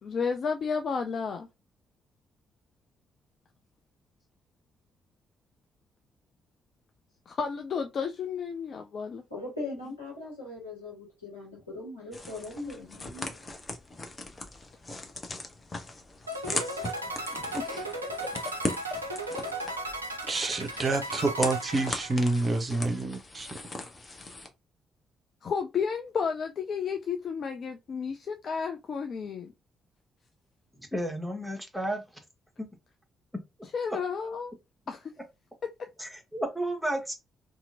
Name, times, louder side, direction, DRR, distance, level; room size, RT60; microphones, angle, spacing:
voice 1, 0.0-1.5 7.3-9.2 17.3-17.6 25.4-29.5 33.7-34.5 34.9-35.1, left 6 dB, 50° left, 0.3 m, -32 dB
voice 2, 9.3-13.4, left 2 dB, 85° left, 1.3 m, -40 dB
sound 1, 12.1-24.5, left 2 dB, 30° left, 0.7 m, -39 dB
sound 2, 16.3-22.6, right 1 dB, 85° right, 0.3 m, -36 dB
voice 3, 20.3-23.5 23.8-23.9, right 3 dB, 35° right, 0.7 m, -28 dB
voice 4, 30.9-32.0 32.6-32.7 33.9-34.0 36.0-37.1, right 1 dB, ahead, 1.0 m, -32 dB
2.8 x 2.4 x 2.5 m
figure-of-eight pair, 40°, 0 cm